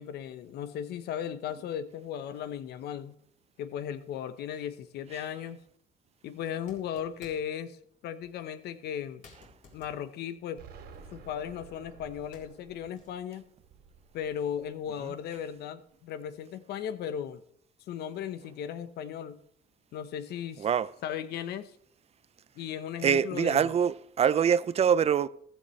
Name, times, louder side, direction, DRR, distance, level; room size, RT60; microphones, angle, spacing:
voice 1, 0.0-3.2 3.6-5.6 6.2-7.8 8.0-9.2 9.7-10.6 11.1-13.5 14.1-17.4 17.9-19.4 19.9-20.7 21.0-21.7 22.6-23.7, left 9 dB, 75° left, 1.0 m, -36 dB
sound 1, 5.6-5.7 6.4-7.6 8.2-8.4 8.8-8.9 9.2-11.7 12.1-13.3, left 3 dB, 50° left, 3.9 m, -57 dB
Explosion, 10.6-15.4, right 5 dB, 75° right, 3.0 m, -52 dB
voice 2, 23.0-25.3, right 8 dB, 40° right, 0.5 m, -24 dB
15.0 x 13.5 x 3.2 m
cardioid pair, 110°, 17 cm